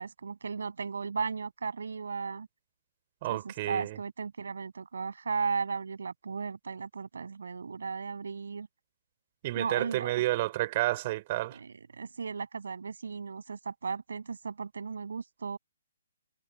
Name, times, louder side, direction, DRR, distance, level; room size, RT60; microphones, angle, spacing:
voice 1, 0.0-2.5 3.2-8.7 9.6-10.1 11.5-15.6, right 5 dB, 65° right, 6.9 m, -36 dB
voice 2, 3.2-4.0 9.4-11.6, right 17 dB, 35° right, 5.1 m, -30 dB
figure-of-eight pair, 135°, 0 cm